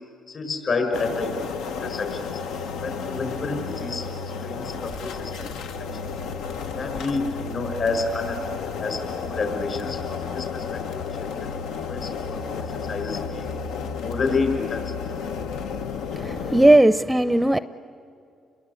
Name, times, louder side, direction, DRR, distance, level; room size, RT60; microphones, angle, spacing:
voice 1, 0.3-1.4 1.6-2.4 2.8-6.0 6.7-13.5 14.0-15.2, left 4 dB, 50° left, 6 dB, 6.0 m, -30 dB
sound 1, 0.9-16.8, left 5 dB, 90° left, 0.9 m, -32 dB
voice 2, 16.1-17.6, right 1 dB, 10° right, 13 dB, 0.5 m, -17 dB
29.5 x 22.5 x 8.4 m, 2.5 s
cardioid pair, 90°, 0 cm